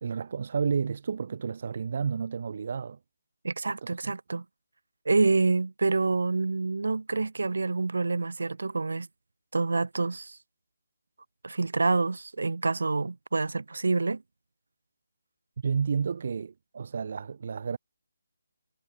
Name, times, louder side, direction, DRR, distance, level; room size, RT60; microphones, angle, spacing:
voice 1, 0.0-3.0 4.0-4.1 15.6-17.8, right 6 dB, 40° right, 3.2 m, -31 dB
voice 2, 3.4-4.4 5.1-9.1 9.5-10.4 11.4-14.2, right 3 dB, 55° right, 5.2 m, -27 dB
figure-of-eight pair, 150°, 0 cm